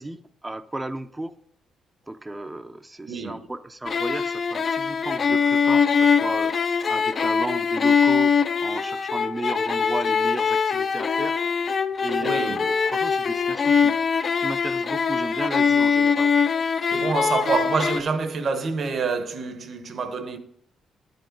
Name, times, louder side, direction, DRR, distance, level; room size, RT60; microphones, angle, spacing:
voice 1, 0.0-1.3 2.1-6.6 6.9-8.3 8.6-11.4 12.0-14.0 14.4-16.4, right 2 dB, 15° right, 0.5 m, -33 dB
voice 2, 3.0-3.5 12.2-12.7 16.9-20.4, right 4 dB, 50° right, 0.9 m, -27 dB
sound 1, 3.9-18.0, left 6 dB, 45° left, 0.5 m, -22 dB
11.0 x 5.3 x 3.8 m
cardioid pair, 90°, 0 cm